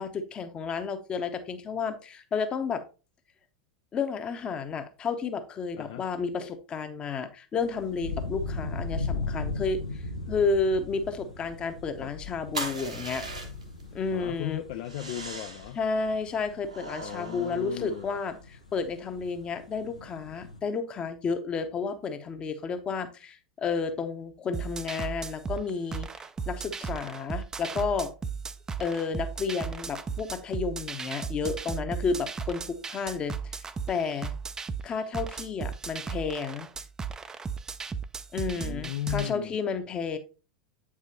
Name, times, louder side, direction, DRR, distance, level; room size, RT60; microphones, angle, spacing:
voice 1, 0.0-2.8 3.9-13.3 13.9-14.6 15.7-28.1 28.8-34.3 34.8-36.7 38.3-40.2, left 5 dB, 25° left, 0.9 m, -31 dB
sound 1, 7.6-20.6, left 3 dB, 85° left, 1.0 m, -38 dB
sound 2, 12.5-13.8 14.8-15.8 16.7-18.3, right 2 dB, 85° right, 1.1 m, -39 dB
voice 2, 14.1-15.8 17.0-18.1 38.5-39.6, left 13 dB, 50° left, 0.4 m, -36 dB
sound 3, 24.5-39.3, right 6 dB, 15° right, 0.4 m, -36 dB
8.1 x 4.9 x 2.8 m
figure-of-eight pair, 85°, 4 cm